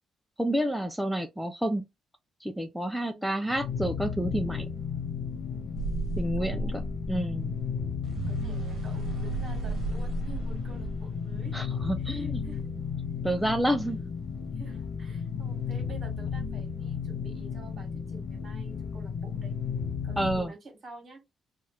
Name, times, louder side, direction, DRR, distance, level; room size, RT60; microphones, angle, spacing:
voice 1, 0.4-1.8 2.4-4.7 6.2-6.8 7.1-7.5 11.5-12.4 13.2-14.1 20.2-20.5, right 1 dB, ahead, 0.4 m, -29 dB
voice 2, 3.1-3.4 6.4-6.8 8.1-11.6 12.0-12.7 13.4-14.0 14.5-19.5 20.0-21.2, right 3 dB, 45° right, 1.4 m, -49 dB
sound 1, 3.5-20.5, left 6 dB, 45° left, 0.5 m, -34 dB
sound 2, 5.8-11.8, right 3 dB, 70° right, 0.9 m, -34 dB
2.8 x 2.4 x 3.1 m
cardioid pair, 90°, 0 cm